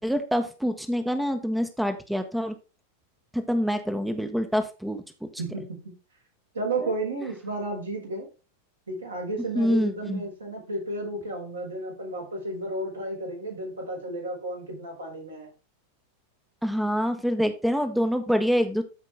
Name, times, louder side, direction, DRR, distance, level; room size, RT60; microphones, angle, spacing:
voice 1, 0.0-2.5 3.3-5.0 6.8-6.9 9.5-10.2 16.6-18.8, equal, 5° right, 8 dB, 1.1 m, -26 dB
voice 2, 5.4-5.9 6.5-8.3 8.9-15.5, right 2 dB, 75° right, -1 dB, 5.0 m, -33 dB
13.5 x 5.2 x 3.5 m, 0.31 s
figure-of-eight pair, 90°, 0 cm